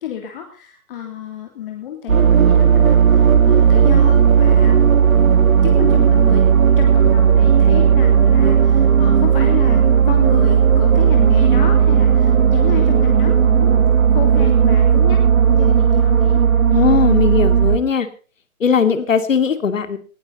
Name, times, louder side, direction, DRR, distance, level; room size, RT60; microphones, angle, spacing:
voice 1, 0.0-4.9 5.3-6.4 6.8-13.8 14.1-15.2 15.5-16.4, left 9 dB, 40° left, 3 dB, 3.1 m, -30 dB
sound 1, 2.1-17.8, right 7 dB, 75° right, 2.3 m, -14 dB
voice 2, 16.7-18.1 18.6-20.0, left 6 dB, 65° left, 11 dB, 2.5 m, -18 dB
19.0 x 14.0 x 4.1 m, 0.37 s
figure-of-eight pair, 140°, 42 cm